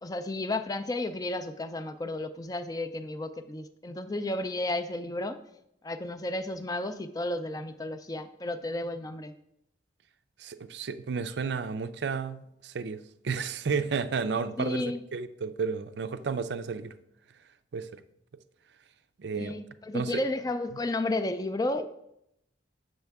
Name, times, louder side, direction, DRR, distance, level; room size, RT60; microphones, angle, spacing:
voice 1, 0.0-5.4 5.8-9.3 14.6-15.0 19.3-21.9, left 2 dB, 20° left, 9 dB, 0.4 m, -32 dB
voice 2, 10.4-13.0 13.2-14.8 15.1-16.9 17.7-18.0 19.2-19.5 19.9-20.2, right 5 dB, 65° right, 12 dB, 0.4 m, -32 dB
7.9 x 6.4 x 3.5 m, 0.79 s
head